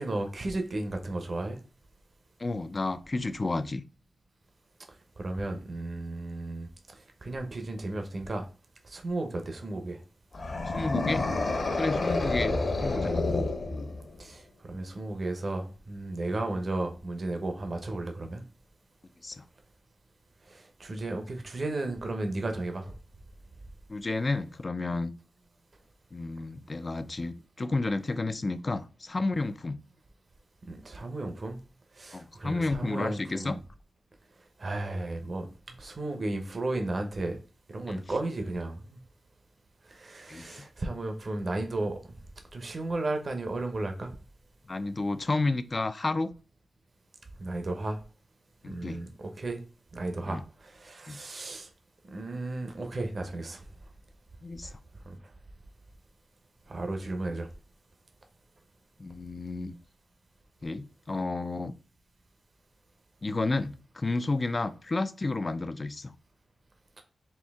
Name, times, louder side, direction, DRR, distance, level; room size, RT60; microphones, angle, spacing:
voice 1, 0.0-1.6 5.2-8.4 8.8-10.0 14.2-18.4 20.5-22.9 30.7-31.6 31.9-33.6 34.6-37.4 37.7-39.0 39.9-42.0 42.5-44.1 47.4-48.0 48.6-49.6 49.9-51.7 52.1-53.6 54.6-54.7 55.0-55.2 56.7-57.5, right 2 dB, 45° right, 0.7 m, -34 dB
voice 2, 2.4-3.8 10.7-11.3 11.8-12.6 12.8-13.2 16.3-16.4 19.2-19.4 23.9-25.1 26.1-29.8 32.1-33.6 37.9-38.0 40.3-40.7 44.7-46.3 48.6-49.0 50.3-50.4 51.1-51.2 54.4-54.8 59.0-59.7 60.6-61.7 63.2-66.1, left 3 dB, 30° left, 0.3 m, -31 dB
sound 1, 10.3-14.2, left 2 dB, 55° left, 1.0 m, -29 dB
4.4 x 2.7 x 3.4 m
wide cardioid pair, 105°, 0 cm